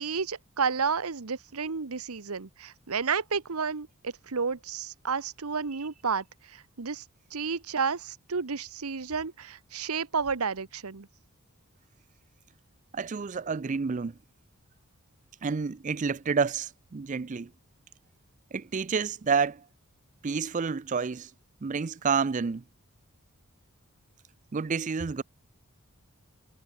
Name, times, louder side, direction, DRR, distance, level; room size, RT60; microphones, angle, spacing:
voice 1, 0.0-7.0 7.3-11.1, right 5 dB, 80° right, 1.0 m, -31 dB
voice 2, 12.9-14.1 15.4-17.5 18.5-19.6 20.2-21.3 21.6-22.6 24.5-25.2, right 5 dB, 35° right, 0.4 m, -29 dB
head